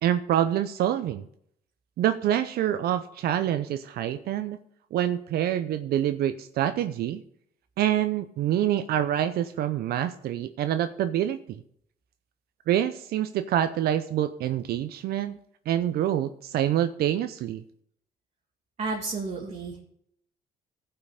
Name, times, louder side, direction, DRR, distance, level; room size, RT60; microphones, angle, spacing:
voice 1, 0.0-1.2 2.0-4.6 4.9-7.2 7.8-11.4 12.7-15.4 15.7-17.6, right 11 dB, 65° right, 10 dB, 0.6 m, -26 dB
voice 2, 18.8-19.8, right 3 dB, 40° right, -2 dB, 2.2 m, -32 dB
16.0 x 5.7 x 5.0 m, 0.69 s
cardioid pair, 110°, 17 cm